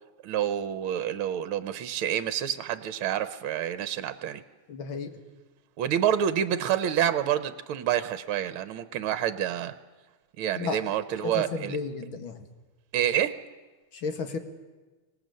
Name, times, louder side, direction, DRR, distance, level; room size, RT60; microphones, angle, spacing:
voice 1, 0.2-4.4 5.8-9.7 10.4-11.8 12.9-13.4, right 10 dB, 75° right, 12 dB, 1.7 m, -28 dB
voice 2, 4.7-5.2 10.6-10.8 11.2-12.4 13.9-14.4, left 5 dB, 65° left, 7 dB, 2.5 m, -33 dB
25.0 x 18.5 x 7.8 m, 1.2 s
omnidirectional pair, 2.4 m